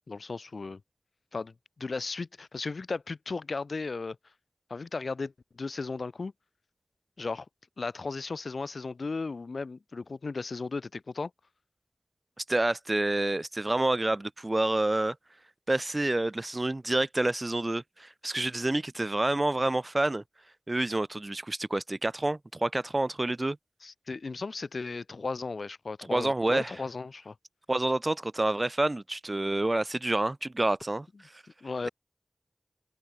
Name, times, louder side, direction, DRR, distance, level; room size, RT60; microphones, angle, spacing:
voice 1, 0.1-0.8 1.3-4.2 4.7-6.3 7.2-7.5 7.8-11.3 23.8-27.3 31.6-31.9, left 4 dB, 80° left, 0.6 m, -35 dB
voice 2, 12.4-15.2 15.7-20.2 20.7-23.6 26.1-26.7 27.7-31.1 31.8-31.9, right 2 dB, 35° right, 0.3 m, -28 dB
wide cardioid pair, 45°, 0 cm